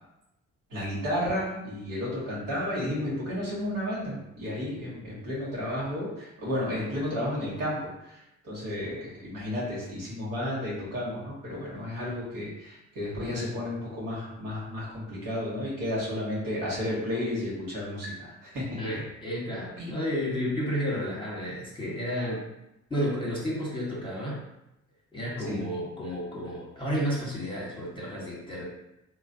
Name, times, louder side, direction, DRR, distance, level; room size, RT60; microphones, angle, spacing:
voice 1, 0.7-18.7 19.8-19.9 25.5-25.6, left 1 dB, 55° right, -6 dB, 1.4 m, -32 dB
voice 2, 18.8-22.4 22.9-24.4 25.1-28.6, equal, 10° left, -6 dB, 1.3 m, -31 dB
3.0 x 2.2 x 2.7 m, 0.88 s
hypercardioid pair, 45°, 40 cm